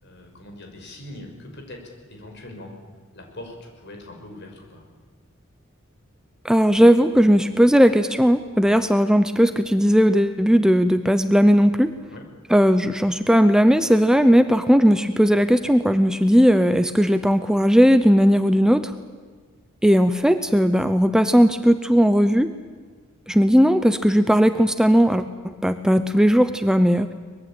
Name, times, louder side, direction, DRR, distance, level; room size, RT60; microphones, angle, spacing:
voice 1, 0.0-2.7 3.1-4.8 12.1-12.3, left 1 dB, 55° left, 3 dB, 5.7 m, -41 dB
voice 2, 6.4-11.9 12.5-18.9 19.8-22.5 23.3-27.1, equal, 5° right, 10 dB, 0.7 m, -17 dB
23.5 x 21.5 x 8.8 m, 1.6 s
head